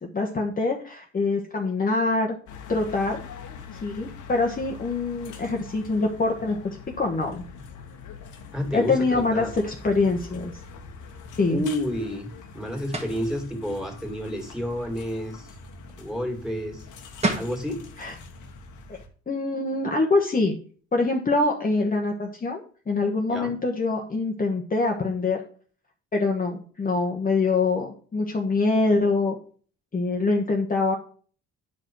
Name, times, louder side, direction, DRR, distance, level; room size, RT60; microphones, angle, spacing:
voice 1, 0.1-2.3 2.7-3.2 3.8-7.4 8.7-10.5 11.4-11.6 18.0-18.1 18.9-19.0 19.3-20.6 20.9-22.6 22.9-25.4 26.1-29.4 29.9-30.9, left 3 dB, 30° left, 1 dB, 1.2 m, -24 dB
sound 1, 2.5-19.1, left 5 dB, 80° left, 1.4 m, -43 dB
voice 2, 8.5-9.5 11.5-12.3 12.5-15.5 16.0-16.8 17.3-17.8 23.3-23.5, equal, ahead, 3 dB, 2.5 m, -30 dB
sound 2, 12.9-13.2 16.9-17.0 17.2-17.6, right 2 dB, 20° right, 1.7 m, -27 dB
9.5 x 5.0 x 4.6 m, 0.43 s
cardioid pair, 90°, 30 cm